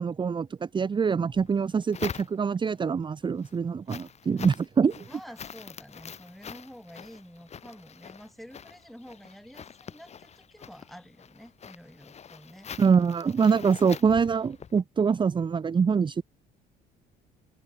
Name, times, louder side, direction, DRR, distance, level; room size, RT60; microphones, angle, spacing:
voice 1, 0.0-5.0 12.8-16.2, right 6 dB, 30° right, 1.1 m, -24 dB
sound 1, 1.3-2.8 3.2-14.8, left 7 dB, 40° left, 3.0 m, -44 dB
voice 2, 5.1-12.7, equal, ahead, 3.6 m, -49 dB
open air
cardioid pair, 110°, 17 cm